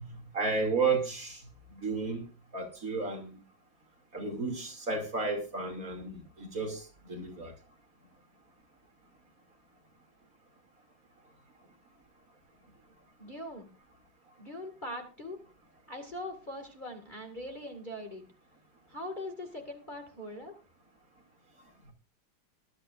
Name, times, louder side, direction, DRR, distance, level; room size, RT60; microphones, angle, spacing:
voice 1, 0.3-1.4 1.8-2.2 2.5-3.4 4.1-6.8 7.1-7.5, right 4 dB, 45° right, 3.0 m, -32 dB
voice 2, 13.2-13.7 14.4-15.4 15.9-18.2 18.9-20.5, left 1 dB, 25° left, 2.0 m, -41 dB
20.5 x 12.0 x 2.5 m
omnidirectional pair, 2.1 m